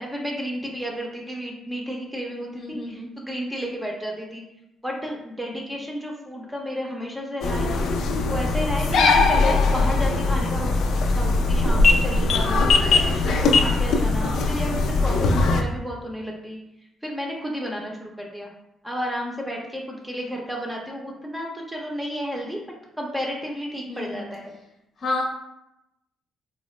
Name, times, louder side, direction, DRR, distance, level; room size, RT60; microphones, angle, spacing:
voice 1, 0.0-4.4 4.8-7.8 8.3-10.7 11.1-16.6 17.0-18.5 18.8-22.6 23.0-24.5, equal, 5° right, -1 dB, 0.6 m, -32 dB
voice 2, 2.5-3.1 8.8-9.1 23.9-24.3 25.0-25.2, left 2 dB, 45° left, -1 dB, 0.7 m, -31 dB
sound 1, 7.4-15.6, left 3 dB, 75° left, 0.4 m, -20 dB
3.9 x 2.0 x 3.1 m, 0.86 s
cardioid pair, 90°, 0 cm